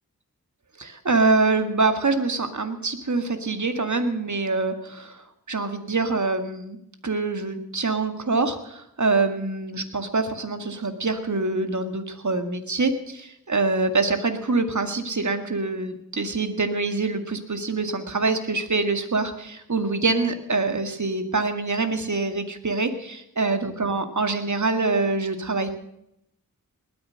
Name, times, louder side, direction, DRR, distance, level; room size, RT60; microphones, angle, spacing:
voice 1, 0.8-6.8 7.0-25.7, right 3 dB, 55° right, 8 dB, 2.0 m, -25 dB
19.5 x 9.7 x 6.4 m, 0.79 s
cardioid pair, 45°, 35 cm